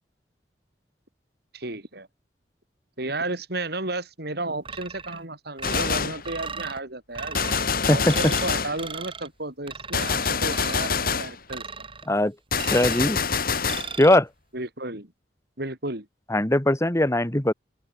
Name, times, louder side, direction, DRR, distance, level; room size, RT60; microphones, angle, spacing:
voice 1, 1.5-2.1 3.0-7.4 7.9-11.6 14.5-15.1 15.6-16.1, right 2 dB, 60° right, 6.6 m, -33 dB
sound 1, 4.7-5.2 5.6-6.8 7.1-7.6 8.1-8.5 8.8-9.3 9.7-10.1 10.5-11.0 11.5-12.1 12.6-13.1 13.7-14.2, right 5 dB, 30° right, 3.1 m, -37 dB
Gunshot gunfire, 5.6-6.3 7.3-8.8 9.9-11.4 12.5-13.9, left 5 dB, 55° left, 3.3 m, -26 dB
voice 2, 12.7-13.2 14.0-14.3 16.3-17.5, left 1 dB, 15° left, 1.7 m, -20 dB
open air
head